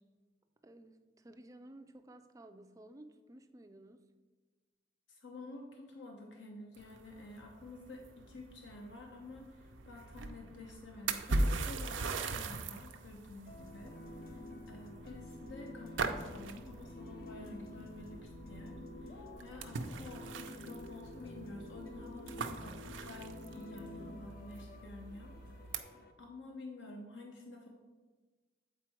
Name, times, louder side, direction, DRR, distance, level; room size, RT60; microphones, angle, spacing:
voice 1, 0.6-4.1 19.1-19.4 24.1-24.2, right 1 dB, 20° right, 8 dB, 0.3 m, -55 dB
voice 2, 5.1-8.0 8.3-25.3 25.7-25.8 26.2-27.7, left 2 dB, 80° left, 1 dB, 0.8 m, -50 dB
sound 1, 6.7-25.8, right 3 dB, 90° right, 0.5 m, -41 dB
sound 2, 13.5-26.1, left 1 dB, 50° left, 0.5 m, -50 dB
8.1 x 4.4 x 4.5 m, 1.3 s
head